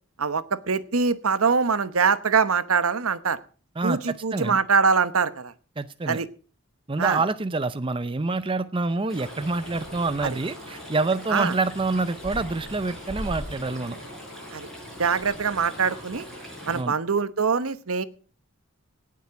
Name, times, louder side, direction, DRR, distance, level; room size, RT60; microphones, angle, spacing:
voice 1, 0.2-3.4 3.8-5.5 6.1-6.3 7.0-7.2 10.2-10.4 11.3-11.5 14.5-14.7 15.0-16.2 16.7-18.0, right 5 dB, 75° right, 13 dB, 1.0 m, -23 dB
voice 2, 3.8-4.6 5.8-6.2 6.9-14.0 16.7-17.0, right 3 dB, 25° right, 12 dB, 0.5 m, -27 dB
Brass instrument, 8.9-16.9, left 3 dB, 45° left, 3.9 m, -50 dB
Stream, 9.1-16.8, equal, ahead, 6.3 m, -40 dB
18.0 x 7.4 x 5.9 m, 0.39 s
head